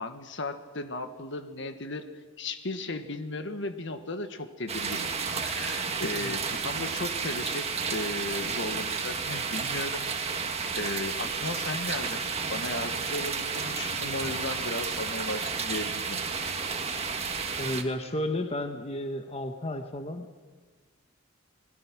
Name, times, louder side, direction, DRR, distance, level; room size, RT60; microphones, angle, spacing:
voice 1, 0.0-2.1 2.4-5.1 5.4-10.4 10.7-16.2, left 2 dB, 60° left, 8 dB, 1.6 m, -36 dB
sound 1, 4.7-17.8, right 5 dB, 30° right, 1.7 m, -32 dB
voice 2, 17.6-20.4, left 1 dB, 30° left, 6 dB, 1.4 m, -33 dB
27.5 x 20.5 x 6.2 m, 1.5 s
head